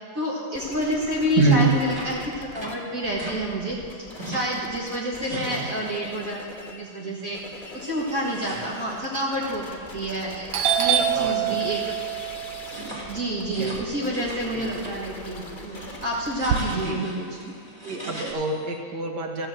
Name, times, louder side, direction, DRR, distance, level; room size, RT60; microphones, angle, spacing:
voice 1, 0.2-7.4 7.7-10.5 10.8-12.0 13.1-17.3, equal, 45° right, -5 dB, 1.9 m, -29 dB
sound 1, 0.5-2.7 3.0-6.8 7.2-18.8, left 3 dB, 30° left, 1.1 m, -42 dB
voice 2, 1.4-1.7 5.3-5.7 8.5-8.6 11.0-11.6 13.5-13.7 14.5-14.7 16.7-17.0 17.8-19.5, right 3 dB, 65° right, 2 dB, 1.9 m, -26 dB
sound 2, 1.9-3.4 3.7-4.6 5.0-6.1 6.4-6.8 7.2-14.4 14.7-15.0 15.4-18.3, equal, 15° right, 2.0 m, -41 dB
Doorbell, 9.9-10.2 10.5-14.7 15.0-16.6, right 10 dB, 90° right, 1.5 m, -26 dB
15.5 x 5.8 x 7.5 m, 2.4 s
omnidirectional pair, 2.1 m